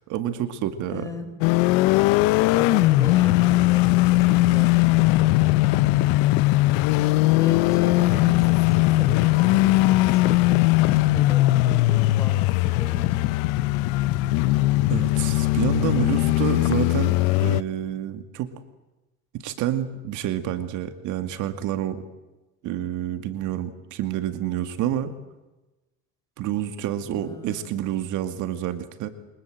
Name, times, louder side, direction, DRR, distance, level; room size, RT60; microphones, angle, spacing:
voice 1, 0.1-1.1 14.9-18.5 19.3-22.0 22.6-25.1 26.4-29.1, right 11 dB, 60° right, 9 dB, 2.3 m, -28 dB
voice 2, 0.9-1.3 2.5-5.5 6.9-13.4 27.2-27.7, left 2 dB, 10° left, 6 dB, 4.6 m, -37 dB
sound 1, 1.4-17.6, left 19 dB, 85° left, 0.9 m, -19 dB
28.5 x 24.5 x 7.9 m, 1.1 s
cardioid pair, 140°, 33 cm